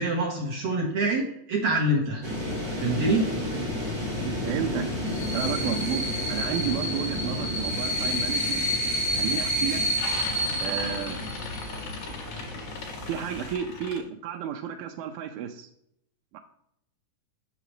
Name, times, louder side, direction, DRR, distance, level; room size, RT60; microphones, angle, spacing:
voice 1, 0.0-2.2 2.8-3.2, right 2 dB, 55° right, -1 dB, 1.9 m, -25 dB
sound 1, 2.2-13.5, equal, 15° right, 1.1 m, -29 dB
voice 2, 4.5-5.1 5.3-8.7 9.1-9.8 10.6-11.2 13.1-15.7 16.3-16.4, right 9 dB, 90° right, 3 dB, 2.3 m, -32 dB
sound 2, 9.4-9.5 9.7-14.0, left 5 dB, 75° left, 3.4 m, -39 dB
6.8 x 6.7 x 3.0 m, 0.75 s
omnidirectional pair, 4.0 m